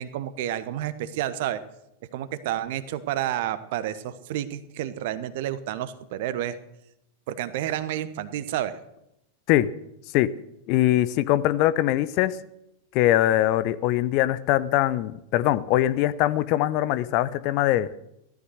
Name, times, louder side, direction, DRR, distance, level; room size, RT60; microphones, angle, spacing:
voice 1, 0.0-1.6 2.1-6.6 7.3-8.8, right 12 dB, 50° right, 14 dB, 1.1 m, -30 dB
voice 2, 10.7-12.4 12.9-17.9, left 14 dB, 45° left, 16 dB, 0.7 m, -22 dB
16.5 x 13.0 x 6.5 m, 0.83 s
figure-of-eight pair, 90°, 0 cm